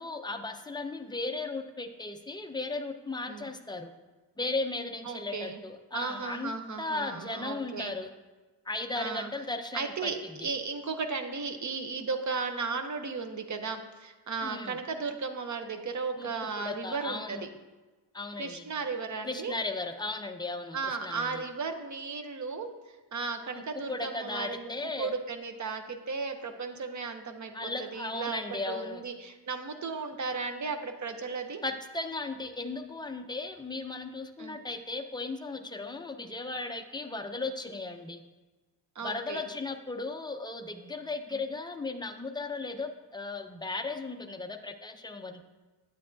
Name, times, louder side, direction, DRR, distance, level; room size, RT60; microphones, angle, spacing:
voice 1, 0.0-3.9 4.4-6.5 6.8-8.1 8.7-10.5 14.4-14.8 16.2-16.3 16.6-17.5 18.1-18.7 19.2-21.4 23.5-25.1 27.5-29.0 31.6-38.2 39.0-45.5, left 3 dB, 10° left, 5 dB, 0.3 m, -36 dB
voice 2, 5.0-5.6 5.9-7.9 9.0-9.3 9.7-17.4 18.4-19.5 20.7-22.7 23.1-31.6 34.4-34.6 39.0-39.5 41.3-41.4, right 4 dB, 40° right, 6 dB, 0.7 m, -35 dB
8.7 x 8.4 x 2.6 m, 1.2 s
wide cardioid pair, 150°, 44 cm